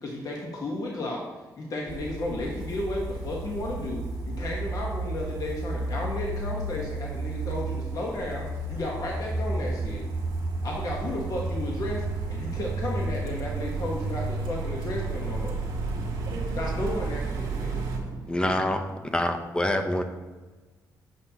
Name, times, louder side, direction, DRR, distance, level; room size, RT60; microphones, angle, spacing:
voice 1, 0.0-1.2 1.6-10.1 10.6-15.6 16.6-17.9, left 1 dB, 50° left, -2 dB, 1.1 m, -33 dB
sound 1, 1.9-18.0, right 3 dB, 85° right, 1.4 m, -32 dB
voice 2, 15.7-18.6, right 2 dB, 70° right, 1 dB, 1.0 m, -42 dB
voice 3, 18.3-18.8 19.1-20.0, left 1 dB, 10° left, 6 dB, 0.7 m, -25 dB
7.9 x 5.5 x 2.8 m, 1.3 s
cardioid pair, 80°, 8 cm